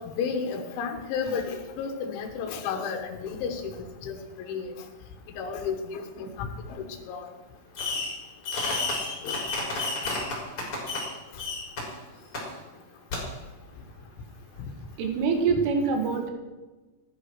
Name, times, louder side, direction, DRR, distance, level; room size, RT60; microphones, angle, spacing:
voice 1, 0.0-3.7 4.0-4.7 5.4-7.2 9.2-9.4, left 6 dB, 75° left, 3 dB, 3.7 m, -32 dB
Fireworks, 7.8-8.2 8.4-11.1 11.4-11.8 12.3-12.4 13.1-13.2, left 3 dB, 30° left, 4.7 m, -30 dB
voice 2, 15.0-16.3, right 5 dB, 90° right, 4 dB, 4.5 m, -25 dB
15.5 x 11.0 x 6.4 m, 1.2 s
omnidirectional pair, 5.5 m